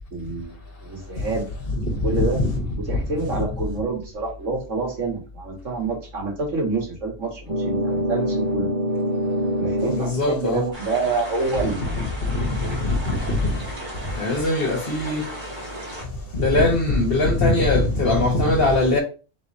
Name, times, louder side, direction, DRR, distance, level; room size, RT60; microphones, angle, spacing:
voice 1, 0.1-1.5 2.0-2.4 2.9-8.7 9.6-12.0 12.6-12.8, right 3 dB, 90° right, 1.9 m, -27 dB
voice 2, 1.7-2.6 9.9-10.6 12.8-13.4 14.2-15.3 16.3-19.0, left 2 dB, 50° left, 1.4 m, -21 dB
sound 1, 7.5-10.2, equal, 60° right, 0.3 m, -24 dB
sound 2, 10.7-16.0, right 1 dB, 40° right, 1.8 m, -36 dB
3.8 x 3.1 x 4.1 m
omnidirectional pair, 1.3 m